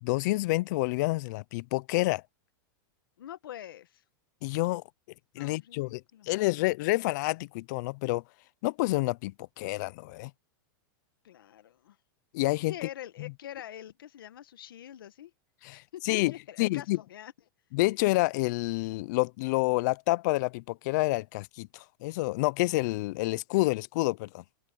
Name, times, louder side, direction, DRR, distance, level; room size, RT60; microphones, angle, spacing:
voice 1, 0.0-2.2 4.4-4.8 5.3-8.2 8.6-10.3 12.3-12.7 13.2-13.3 15.6-17.0 17.7-24.4, left 21 dB, 55° left, 0.5 m, -28 dB
voice 2, 3.2-4.0 5.4-6.3 11.2-12.0 12.7-15.3 15.7-17.3, left 11 dB, 85° left, 1.4 m, -45 dB
open air
supercardioid pair, 135°, 11 cm